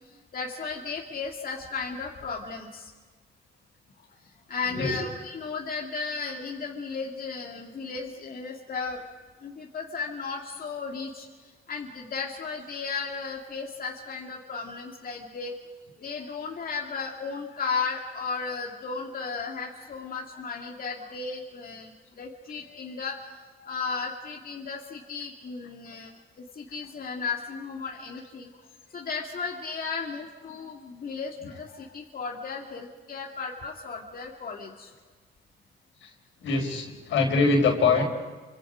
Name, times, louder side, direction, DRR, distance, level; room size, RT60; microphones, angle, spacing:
voice 1, 0.3-2.9 4.5-9.0 9.4-11.3 11.7-15.5 16.0-28.5 28.9-34.9, left 4 dB, 45° left, -1 dB, 2.4 m, -35 dB
voice 2, 36.4-38.0, left 4 dB, 75° left, 2 dB, 4.8 m, -23 dB
29.5 x 25.5 x 5.1 m, 1.3 s
cardioid pair, 90°, 20 cm